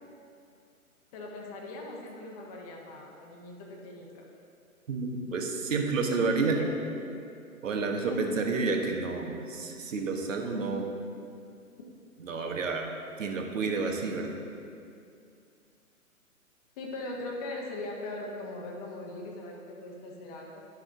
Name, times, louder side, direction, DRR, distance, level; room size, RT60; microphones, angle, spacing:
voice 1, 1.1-4.2 6.4-7.1 8.1-8.3 16.8-20.7, left 2 dB, 25° left, -1 dB, 1.1 m, -40 dB
voice 2, 4.9-6.6 7.6-10.9 12.2-12.9 13.2-14.4, right 4 dB, 60° right, 2 dB, 1.4 m, -30 dB
11.5 x 6.3 x 3.7 m, 2.4 s
figure-of-eight pair, 135°, 44 cm